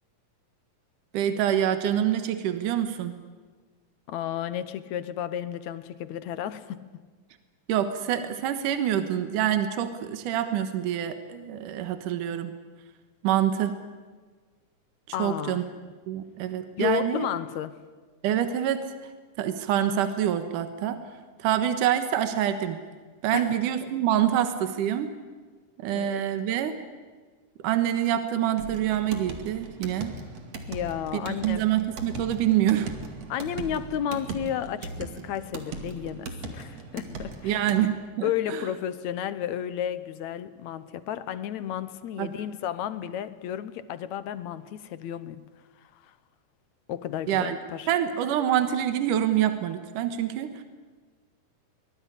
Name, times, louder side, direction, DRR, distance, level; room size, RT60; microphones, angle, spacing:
voice 1, 1.1-3.1 7.7-12.5 13.2-13.8 15.1-15.6 16.1-17.3 18.2-19.1 19.4-21.0 21.4-22.8 23.2-25.1 25.8-26.8 27.6-30.1 31.1-32.9 37.4-38.7 42.2-42.3 47.3-47.6 47.9-50.6, right 10 dB, 75° right, 2.8 m, -26 dB
voice 2, 4.1-6.9 15.1-15.6 16.8-17.8 23.3-23.5 23.9-24.0 25.9-26.2 30.7-31.6 33.3-37.6 38.2-45.4 46.1-46.2 46.9-47.9, left 10 dB, 70° left, 2.1 m, -32 dB
sound 1, 28.6-37.8, right 4 dB, 50° right, 3.3 m, -39 dB
23.5 x 20.5 x 10.0 m
omnidirectional pair, 3.8 m